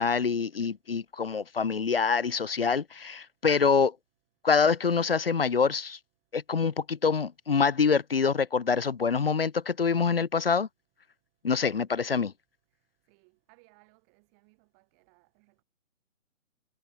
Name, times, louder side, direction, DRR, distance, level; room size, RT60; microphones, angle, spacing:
voice 1, 0.0-3.9 4.4-6.0 6.3-10.7 11.4-12.3, left 5 dB, 45° left, 0.6 m, -25 dB
voice 2, 11.7-12.1 13.1-15.6, right 38 dB, 10° right, 3.4 m, -63 dB
hypercardioid pair, 170°, 39 cm